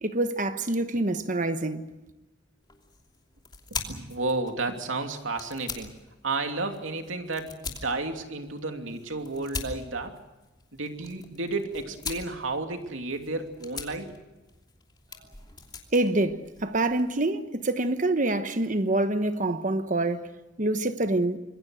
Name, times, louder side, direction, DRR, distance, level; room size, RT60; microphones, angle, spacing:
voice 1, 0.0-1.8 15.9-20.3 20.6-21.4, right 2 dB, 40° right, 1.1 m, -26 dB
sound 1, 2.6-17.2, left 4 dB, 20° left, 2.9 m, -43 dB
voice 2, 3.7-5.9 6.2-10.2 10.7-14.1, right 3 dB, 90° right, 2.9 m, -32 dB
26.5 x 22.0 x 6.4 m
head